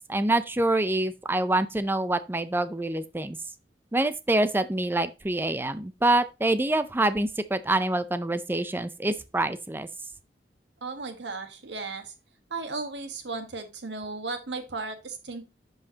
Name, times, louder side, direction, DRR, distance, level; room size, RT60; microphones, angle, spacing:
voice 1, 0.1-3.4 3.9-9.9, right 2 dB, 10° right, 0.5 m, -26 dB
voice 2, 10.8-12.1 12.5-15.4, right 3 dB, 85° right, 1.5 m, -35 dB
10.5 x 5.6 x 2.9 m
head